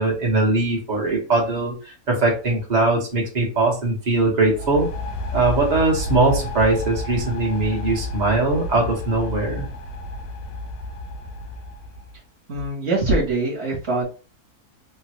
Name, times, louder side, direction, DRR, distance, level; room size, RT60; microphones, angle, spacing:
voice 1, 0.0-4.9 5.3-9.7, right 2 dB, 35° right, -3 dB, 0.9 m, -21 dB
sound 1, 4.4-12.2, left 1 dB, 70° left, 0.9 m, -31 dB
voice 2, 12.5-14.0, right 2 dB, 50° right, -3 dB, 1.3 m, -23 dB
3.2 x 2.2 x 2.9 m, 0.35 s
omnidirectional pair, 1.6 m